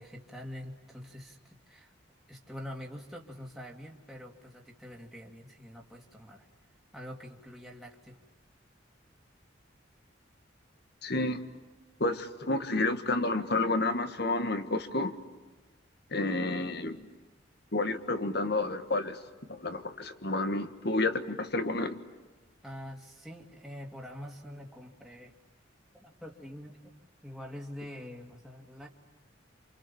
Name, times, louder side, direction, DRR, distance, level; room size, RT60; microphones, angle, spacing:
voice 1, 0.0-1.9 2.3-6.5 6.9-8.2 22.6-25.3 25.9-27.0 27.2-28.9, equal, ahead, -1 dB, 2.6 m, -45 dB
voice 2, 11.0-11.4 12.0-15.1 16.1-17.0 17.7-19.2 19.5-21.9, left 2 dB, 55° left, 9 dB, 1.8 m, -30 dB
28.5 x 28.0 x 7.2 m, 1.3 s
head